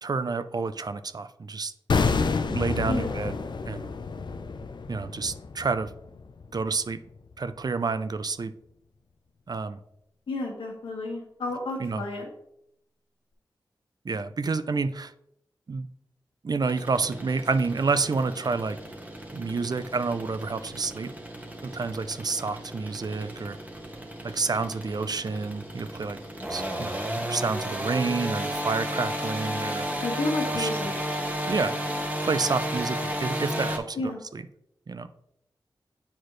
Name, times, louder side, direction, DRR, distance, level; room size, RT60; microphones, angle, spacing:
voice 1, 0.0-1.7 2.5-3.4 3.7-3.9 4.9-5.9 6.5-7.0 7.4-8.5 9.5-9.8 11.8-12.0 14.0-15.1 15.7-15.9 16.4-18.8 19.3-21.1 21.6-23.6 24.2-26.2 26.5-29.9 30.5-30.7 31.5-31.8 32.2-34.4 34.9-35.1, right 4 dB, 50° right, 11 dB, 0.5 m, -29 dB
sound 1, 1.9-6.9 7.2-7.3, left 4 dB, 65° left, 0.5 m, -29 dB
voice 2, 10.3-12.3 30.0-30.9 33.9-34.2, left 2 dB, 90° left, -1 dB, 1.6 m, -31 dB
sound 2, 16.6-33.8, equal, 20° right, 1.4 m, -33 dB
8.0 x 4.3 x 3.1 m, 0.79 s
cardioid pair, 45°, 8 cm